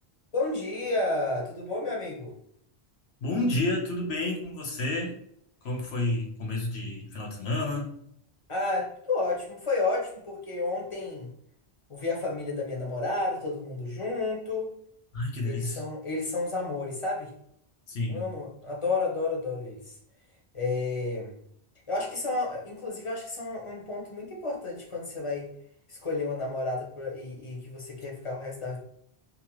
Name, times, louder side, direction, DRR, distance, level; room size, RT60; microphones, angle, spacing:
voice 1, 0.3-2.3 8.5-11.3 11.9-14.7 15.4-17.3 18.1-20.0 20.5-21.3 21.9-25.5 25.9-28.8, left 3 dB, 35° left, -2 dB, 0.6 m, -31 dB
voice 2, 3.2-5.2 5.6-7.9 15.1-15.8 17.9-18.2, left 2 dB, 75° left, 1 dB, 1.0 m, -30 dB
2.8 x 2.1 x 3.0 m, 0.70 s
omnidirectional pair, 1.1 m